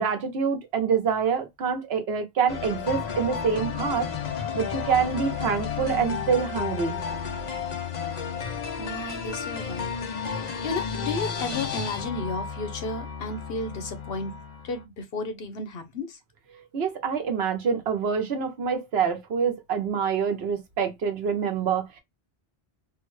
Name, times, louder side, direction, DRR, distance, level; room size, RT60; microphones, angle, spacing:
voice 1, 0.0-4.1 4.5-7.0 16.7-22.0, right 6 dB, 75° right, 1.1 m, -26 dB
sound 1, 2.5-14.8, left 6 dB, 45° left, 0.7 m, -32 dB
voice 2, 8.8-9.9 10.3-16.2, left 3 dB, 70° left, 1.0 m, -33 dB
3.5 x 2.2 x 3.1 m
omnidirectional pair, 1.1 m